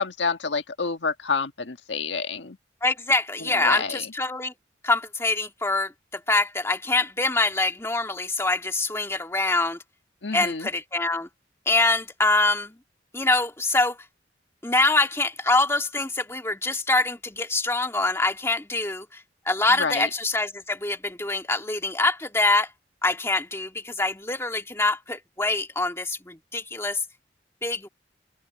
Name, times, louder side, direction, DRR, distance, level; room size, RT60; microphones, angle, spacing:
voice 1, 0.0-2.6 3.4-4.1 10.2-10.7 19.7-20.1, left 4 dB, 85° left, 1.6 m, -28 dB
voice 2, 2.8-4.5 4.8-9.8 10.3-11.3 11.7-12.8 13.1-14.0 14.6-19.2 19.5-22.7 23.0-27.0 27.6-27.9, left 2 dB, 15° left, 1.9 m, -24 dB
open air
head